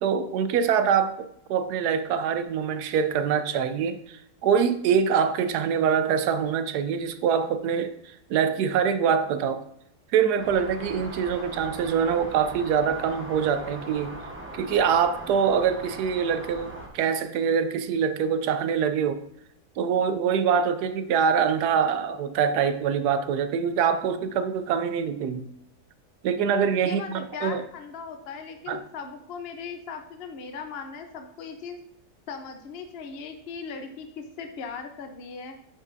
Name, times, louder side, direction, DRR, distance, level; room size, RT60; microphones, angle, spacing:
voice 1, 0.0-7.9 8.3-9.6 10.1-14.2 14.5-19.2 19.8-25.5 26.2-27.6 28.7-28.8, right 7 dB, 85° right, 1.2 m, -24 dB
sound 1, 10.4-16.9, right 1 dB, 10° right, 0.6 m, -40 dB
voice 2, 26.8-31.8 32.3-35.5, left 5 dB, 50° left, 0.8 m, -38 dB
8.4 x 5.5 x 2.6 m
omnidirectional pair, 1.7 m